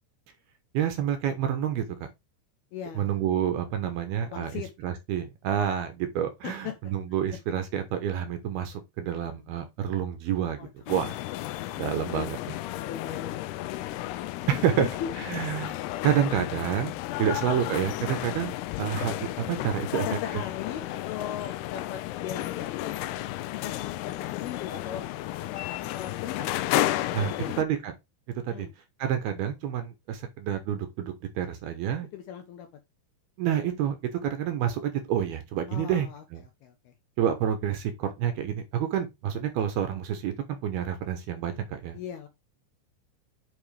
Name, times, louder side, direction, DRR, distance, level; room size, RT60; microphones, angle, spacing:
voice 1, 0.7-1.8 3.0-11.2 11.8-12.4 14.5-14.9 15.2-15.8 16.0-18.5 18.8-20.1 27.1-27.9 28.4-28.7 29.0-32.1 33.4-36.1 36.3-36.4 37.2-42.0, right 9 dB, 70° right, 2.6 m, -28 dB
voice 2, 2.7-3.2 4.3-4.7 6.4-6.9 9.1-9.7 10.6-10.7 11.5-11.8 12.1-12.3 12.8-13.8 14.2-14.3 14.7-15.1 17.1-17.4 19.9-23.1 23.5-25.1 25.7-26.6 27.3-27.6 28.5-28.7 32.1-32.7 35.7-36.2 36.6-36.9 41.9-42.3, left 9 dB, 75° left, 2.4 m, -39 dB
sound 1, 10.9-27.6, left 15 dB, 90° left, 2.3 m, -33 dB
9.6 x 5.6 x 3.3 m
omnidirectional pair, 5.4 m